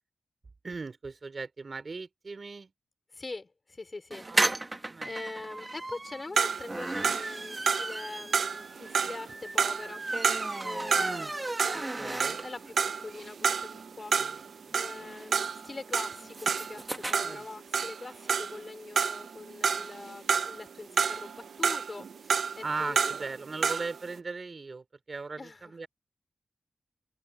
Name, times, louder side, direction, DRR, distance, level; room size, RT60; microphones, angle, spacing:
voice 1, 0.6-2.7 4.3-4.6 4.9-5.1 11.0-11.3 11.7-12.5 14.2-15.1 17.2-17.4 22.6-25.9, right 4 dB, 40° right, 3.7 m, -39 dB
voice 2, 3.1-4.3 5.0-10.0 10.6-14.2 14.7-23.2 25.4-25.9, left 3 dB, 30° left, 3.9 m, -43 dB
sound 1, 4.1-12.7 13.1-13.2 13.4-13.5 13.7-17.1, right 2 dB, 20° right, 1.4 m, -34 dB
sound 2, 6.4-11.3 11.6-18.7 19.0-20.6 21.0-24.0, right 6 dB, 85° right, 1.0 m, -30 dB
wide cardioid pair, 160°, 0 cm